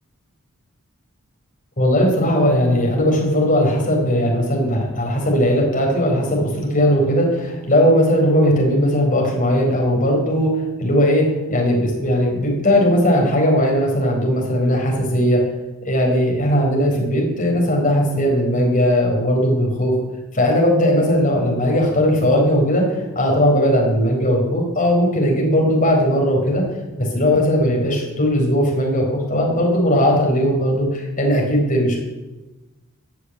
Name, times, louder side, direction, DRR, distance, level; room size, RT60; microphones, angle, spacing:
voice 1, 1.8-15.4 15.9-19.9 20.3-26.6 27.0-32.0, equal, 35° left, 0 dB, 4.2 m, -18 dB
14.5 x 6.7 x 9.8 m, 1.1 s
head